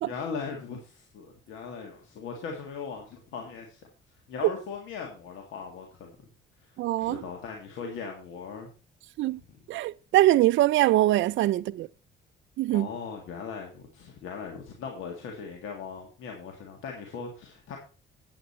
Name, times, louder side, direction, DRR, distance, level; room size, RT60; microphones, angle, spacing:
voice 1, 0.0-3.8 4.3-6.1 7.0-8.7 9.5-9.6 12.7-17.8, left 5 dB, 85° left, 1.8 m, -39 dB
voice 2, 6.8-7.2 9.2-9.4 9.7-11.9 12.6-12.9, right 15 dB, 75° right, 0.4 m, -23 dB
8.7 x 8.7 x 4.2 m
cardioid pair, 90°, 20 cm